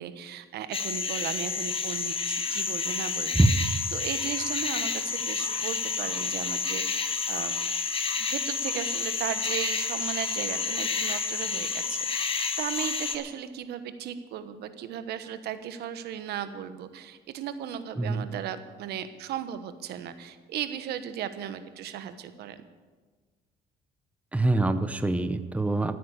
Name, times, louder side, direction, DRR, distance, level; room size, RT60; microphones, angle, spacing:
voice 1, 0.0-3.3 3.9-7.5 8.2-22.6, right 9 dB, 75° right, 11 dB, 1.2 m, -36 dB
sound 1, 0.7-13.2, left 5 dB, 35° left, 1.4 m, -30 dB
voice 2, 18.0-18.3 24.3-26.0, right 2 dB, 10° right, 10 dB, 0.8 m, -24 dB
14.0 x 9.3 x 8.2 m, 1.4 s
cardioid pair, 110°, 17 cm